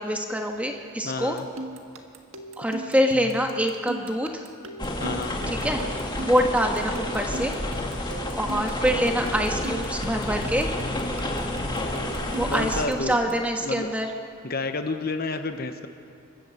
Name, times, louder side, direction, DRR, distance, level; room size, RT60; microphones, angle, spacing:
voice 1, 0.0-1.4 2.6-4.5 5.5-5.8 6.2-7.5 8.3-10.7 12.4-14.1, equal, 5° right, 3 dB, 1.3 m, -25 dB
voice 2, 1.0-1.4 5.0-5.4 12.5-13.2 13.6-13.9 14.4-15.9, left 3 dB, 45° left, 7 dB, 0.9 m, -30 dB
sound 1, 1.2-13.5, right 1 dB, 75° right, 1.5 m, -39 dB
sound 2, 4.8-12.9, left 1 dB, 20° left, 1.9 m, -30 dB
27.0 x 12.0 x 7.8 m, 2.6 s
head